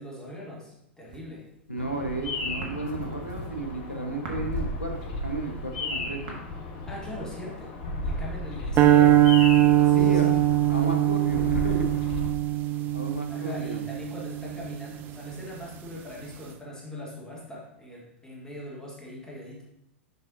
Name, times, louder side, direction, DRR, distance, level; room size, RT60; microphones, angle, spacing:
voice 1, 0.0-1.5 6.9-9.3 9.8-10.4 13.3-19.6, left 1 dB, 10° left, -4 dB, 1.4 m, -40 dB
sound 1, 1.1-2.0 2.3-6.3, right 3 dB, 50° right, 1.2 m, -42 dB
voice 2, 1.7-6.4 9.9-10.4 10.7-11.9 12.9-13.8, right 2 dB, 90° left, 3 dB, 0.8 m, -33 dB
Bird vocalization bird call bird song, 1.8-12.3, left 1 dB, 45° left, 1.0 m, -34 dB
sound 2, 8.8-15.1, right 13 dB, 30° right, 0.4 m, -22 dB
6.5 x 5.5 x 2.7 m, 0.81 s
figure-of-eight pair, 90°, 6 cm